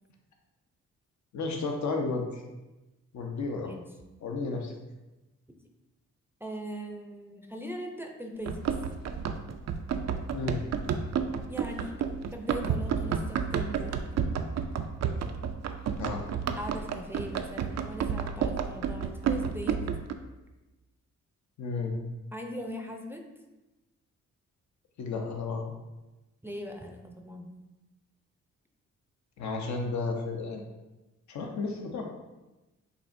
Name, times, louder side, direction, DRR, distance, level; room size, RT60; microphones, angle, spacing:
voice 1, 1.3-2.4 3.1-3.7 4.2-4.7 10.3-10.6 16.0-16.2 21.6-21.9 25.0-25.7 29.4-30.6 31.3-32.0, left 3 dB, 60° left, 2 dB, 0.8 m, -32 dB
voice 2, 3.4-3.8 4.5-4.6 6.4-8.6 11.5-12.0 12.3-13.9 16.6-19.8 22.3-23.2 26.4-27.5, equal, 5° right, 2 dB, 0.6 m, -40 dB
Run, 8.4-20.1, right 7 dB, 55° right, 0.4 m, -31 dB
6.7 x 2.5 x 2.6 m, 1.0 s
supercardioid pair, 55°, 32 cm